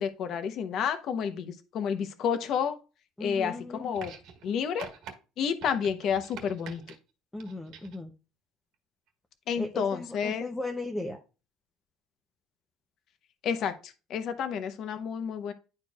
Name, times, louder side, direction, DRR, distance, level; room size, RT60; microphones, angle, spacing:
voice 1, 0.0-2.8 3.2-4.1 4.4-4.9 5.4-6.8 9.5-10.5 13.4-15.5, left 7 dB, 50° left, 9 dB, 0.8 m, -30 dB
voice 2, 3.2-3.8 7.3-8.1 9.6-11.2, left 2 dB, 5° left, 3 dB, 0.6 m, -36 dB
sound 1, 3.9-4.5 4.8-5.1 5.6-7.0 7.4-8.0 9.1-9.2, right 7 dB, 60° right, 1.4 m, -45 dB
10.5 x 4.5 x 2.4 m, 0.32 s
cardioid pair, 155°, 0 cm